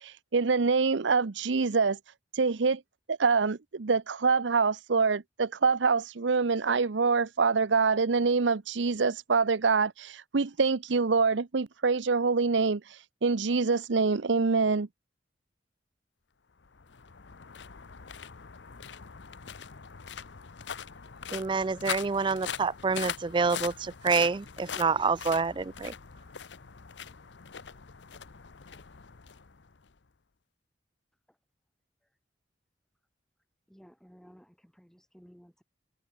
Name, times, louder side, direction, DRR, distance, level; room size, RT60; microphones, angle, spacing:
voice 1, 0.0-2.0 2.3-2.8 3.1-12.8 13.2-14.9, right 4 dB, 80° right, 0.7 m, -25 dB
sound 1, 16.6-30.0, left 7 dB, 70° left, 0.8 m, -42 dB
voice 2, 21.3-25.9, right 4 dB, 25° right, 0.3 m, -27 dB
voice 3, 33.7-35.6, equal, 5° left, 2.4 m, -56 dB
head